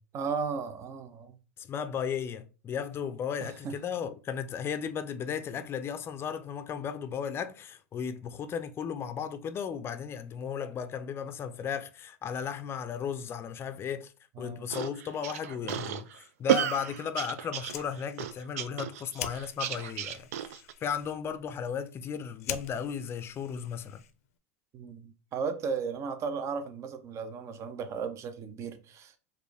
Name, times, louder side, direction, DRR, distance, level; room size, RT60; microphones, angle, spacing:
voice 1, 0.1-1.3 3.6-3.7 14.4-14.6 24.7-29.2, right 5 dB, 40° right, 0.7 m, -35 dB
voice 2, 1.6-14.1 14.4-24.0, left 7 dB, 30° left, 0.5 m, -35 dB
sound 1, 14.7-20.7, right 10 dB, 75° right, 0.4 m, -32 dB
Fire, 17.5-24.4, left 10 dB, 80° left, 0.5 m, -45 dB
4.2 x 2.6 x 3.4 m
hypercardioid pair, 105°, 8 cm